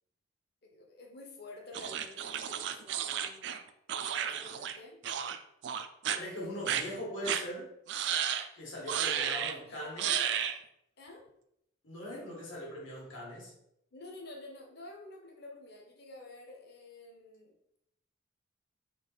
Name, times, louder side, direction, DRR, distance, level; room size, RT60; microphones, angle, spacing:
voice 1, 0.6-3.6 3.9-5.0 6.2-7.0 8.9-10.4 11.0-11.2 13.9-17.8, left 2 dB, 55° left, 1 dB, 0.9 m, -49 dB
sound 1, 1.7-4.8 5.0-5.4 5.6-6.2 6.7-6.8 7.3-7.4 7.9-8.5 8.9-9.6 10.0-10.6, right 9 dB, 60° right, 0.3 m, -33 dB
voice 2, 6.2-7.7 8.5-10.1 11.8-13.5, left 1 dB, 80° left, -4 dB, 1.8 m, -41 dB
4.0 x 3.0 x 4.0 m, 0.78 s
head